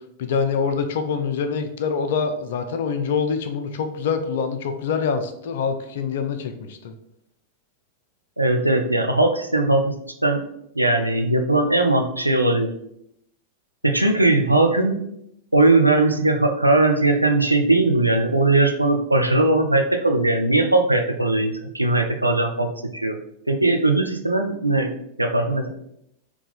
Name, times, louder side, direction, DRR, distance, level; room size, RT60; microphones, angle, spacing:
voice 1, 0.2-6.9, left 5 dB, 55° left, 7 dB, 0.5 m, -25 dB
voice 2, 8.4-9.9 10.2-10.4 10.7-12.7 13.8-15.0 15.5-23.2 23.5-24.9 25.2-25.7, right 2 dB, 85° right, 4 dB, 0.5 m, -19 dB
3.8 x 2.9 x 3.9 m, 0.76 s
figure-of-eight pair, 90°, 0 cm